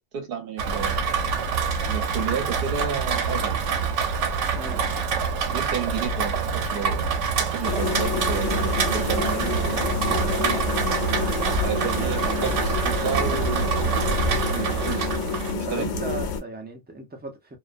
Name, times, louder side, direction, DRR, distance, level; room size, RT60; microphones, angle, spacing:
voice 1, 0.1-1.0 1.8-3.6 4.5-4.9 5.5-7.1 7.4-10.6 11.6-13.7 14.5-15.1 15.5-16.0, right 7 dB, 55° right, 0.9 m, -32 dB
Rain, 0.6-15.5, right 5 dB, 85° right, 0.9 m, -26 dB
voice 2, 4.5-4.9 15.6-17.6, right 3 dB, 15° right, 0.3 m, -36 dB
sound 1, 7.6-16.4, left 5 dB, 75° left, 0.9 m, -28 dB
2.4 x 2.1 x 2.4 m
omnidirectional pair, 1.2 m